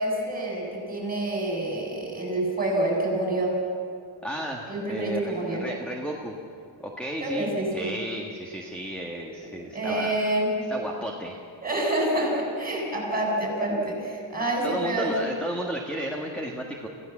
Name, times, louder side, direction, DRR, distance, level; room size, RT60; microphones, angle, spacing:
voice 1, 0.0-3.5 4.7-5.7 7.2-7.9 9.7-10.6 11.6-15.4, right 1 dB, 20° right, -2 dB, 7.3 m, -27 dB
voice 2, 4.2-6.4 6.8-10.2 10.7-11.4 14.6-16.9, equal, ahead, 0 dB, 1.7 m, -33 dB
27.0 x 16.5 x 7.3 m, 2.5 s
wide cardioid pair, 145°, 48 cm